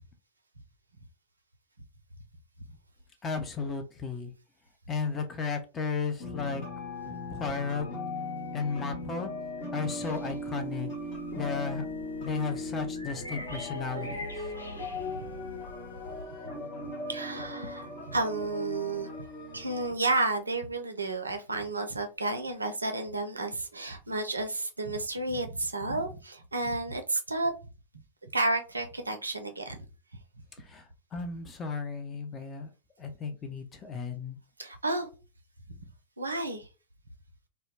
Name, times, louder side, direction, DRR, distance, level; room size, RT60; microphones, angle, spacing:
voice 1, 3.2-4.3 4.9-6.6 7.3-7.9 8.5-9.3 9.7-10.9 11.4-11.9 12.2-14.3 30.6-32.7 33.0-34.4, left 5 dB, 25° left, 6 dB, 0.5 m, -34 dB
sound 1, 6.2-19.9, left 2 dB, 45° left, 0.9 m, -38 dB
sound 2, 10.0-16.2, left 1 dB, 80° left, 0.4 m, -45 dB
voice 2, 17.1-19.1 19.5-27.5 28.2-29.8 34.6-35.1 36.2-36.7, right 2 dB, 80° right, 6 dB, 0.4 m, -31 dB
2.2 x 2.1 x 3.2 m, 0.32 s
figure-of-eight pair, 90°, 0 cm